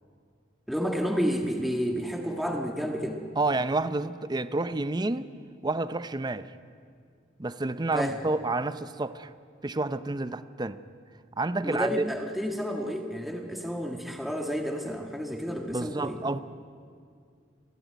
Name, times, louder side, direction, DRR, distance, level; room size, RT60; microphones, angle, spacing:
voice 1, 0.7-3.2 7.9-8.2 11.6-16.2, equal, ahead, 2 dB, 1.6 m, -30 dB
voice 2, 3.4-5.3 5.6-6.5 7.4-9.3 9.6-10.8 11.4-12.0 15.7-16.4, right 2 dB, 20° right, 13 dB, 0.6 m, -29 dB
28.5 x 12.0 x 9.3 m, 2.2 s
head